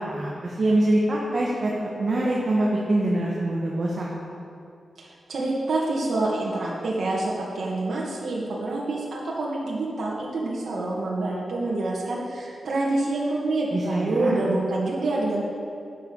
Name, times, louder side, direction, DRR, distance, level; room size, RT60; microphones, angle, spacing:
voice 1, 0.0-1.7 2.0-4.1 13.7-14.4, right 1 dB, 45° right, -5 dB, 1.8 m, -24 dB
voice 2, 5.0-15.4, right 2 dB, 65° right, -5 dB, 2.1 m, -27 dB
12.0 x 8.9 x 5.6 m, 2.5 s
wide cardioid pair, 125°, 0 cm